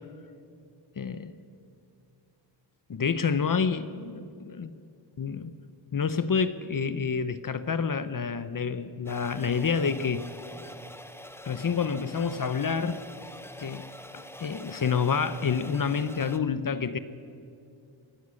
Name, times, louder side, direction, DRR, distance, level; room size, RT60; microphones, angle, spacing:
voice 1, 1.0-1.3 2.9-4.7 5.2-5.5 5.9-10.2 11.4-13.0 13.6-13.9 14.1-17.0, left 6 dB, 45° left, 13 dB, 0.8 m, -28 dB
sound 1, 9.1-16.4, left 1 dB, 5° left, 0.9 m, -45 dB
22.5 x 18.5 x 6.4 m, 2.5 s
wide cardioid pair, 105°, 46 cm